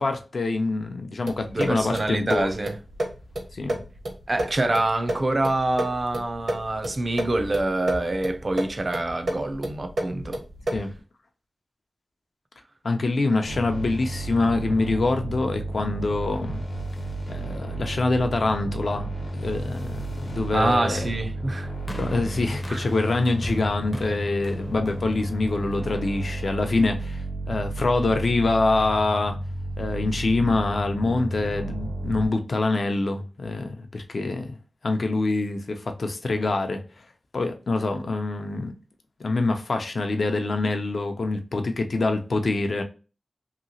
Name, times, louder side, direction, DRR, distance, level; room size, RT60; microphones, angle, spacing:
voice 1, 0.0-2.5 3.5-3.7 10.7-10.9 12.8-16.6 17.3-19.1 19.3-21.1 22.0-29.4 29.8-34.6 34.8-36.8 37.3-38.7 39.2-42.8, left 3 dB, 65° left, 0.5 m, -25 dB
sound 1, 1.2-11.0, right 1 dB, 75° right, 0.9 m, -32 dB
voice 2, 1.5-2.8 4.3-10.4 20.5-21.7 22.7-22.8, right 2 dB, 40° right, 0.4 m, -26 dB
sound 2, 13.4-32.3, right 2 dB, 85° left, 0.9 m, -32 dB
sound 3, 21.9-26.2 27.0-27.1, left 1 dB, 20° left, 0.5 m, -39 dB
2.9 x 2.8 x 2.7 m
wide cardioid pair, 80°, 0 cm